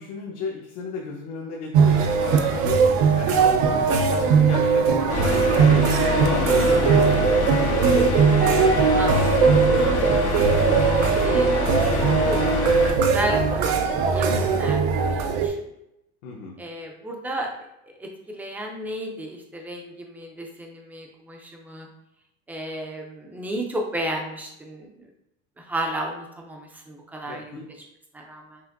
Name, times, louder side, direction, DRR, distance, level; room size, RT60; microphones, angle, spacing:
voice 1, 0.0-2.8 3.1-8.2 8.5-9.8 16.2-16.6 27.2-27.7, left 4 dB, 80° left, -3 dB, 0.9 m, -33 dB
sound 1, 1.7-15.5, right 5 dB, 85° right, 0.6 m, -20 dB
sound 2, 5.1-12.9, left 5 dB, 50° left, 0.8 m, -26 dB
voice 2, 6.4-6.8 8.9-10.3 10.8-14.8 15.1-15.6 16.6-17.5 17.8-21.9 22.5-25.1 25.6-27.6 28.1-28.6, right 1 dB, 5° right, 1 dB, 0.3 m, -33 dB
5.8 x 2.5 x 2.5 m, 0.83 s
cardioid pair, 165°, 32 cm